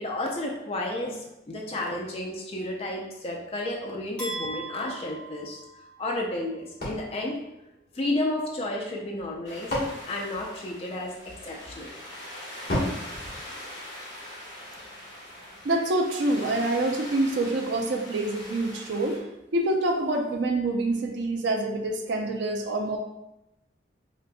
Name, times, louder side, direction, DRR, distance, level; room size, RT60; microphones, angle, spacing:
voice 1, 0.0-5.6 6.0-7.4 7.9-9.7 10.1-11.9, left 1 dB, 30° left, -1 dB, 0.4 m, -32 dB
sound 1, 4.2-6.3, right 1 dB, 5° left, 1.0 m, -38 dB
sound 2, 6.8-8.3 9.2-11.2 12.7-14.3, left 1 dB, 55° left, 1.3 m, -34 dB
sound 3, 9.4-19.2, left 1 dB, 80° left, 1.3 m, -42 dB
voice 2, 15.6-19.2 19.5-23.0, right 2 dB, 70° right, 2 dB, 0.4 m, -26 dB
4.9 x 2.5 x 2.2 m, 0.89 s
head